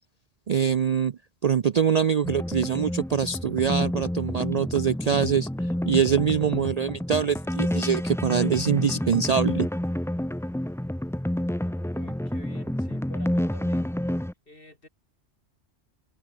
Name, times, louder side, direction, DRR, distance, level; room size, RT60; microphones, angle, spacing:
voice 1, 0.5-5.5 5.9-9.7, right 7 dB, 50° right, 0.5 m, -24 dB
sound 1, 2.2-14.3, left 1 dB, 5° left, 0.4 m, -29 dB
voice 2, 11.9-13.9 14.5-14.9, left 1 dB, 50° left, 5.7 m, -49 dB
omnidirectional pair, 1.2 m